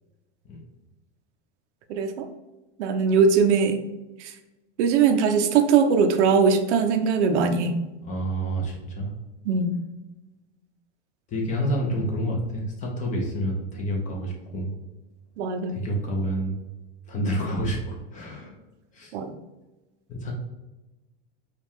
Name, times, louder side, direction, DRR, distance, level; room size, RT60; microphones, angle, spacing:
voice 1, 1.9-2.3 2.8-3.8 4.8-7.8 9.5-9.8 15.4-15.8 19.1-19.3, right 5 dB, 70° right, 7 dB, 0.6 m, -21 dB
voice 2, 8.0-9.1 11.3-14.7 15.7-16.5 17.1-18.6 18.9-19.1 20.1-20.3, right 1 dB, 20° left, 0 dB, 0.7 m, -28 dB
4.9 x 2.4 x 3.4 m, 1.1 s
supercardioid pair, 155°, 36 cm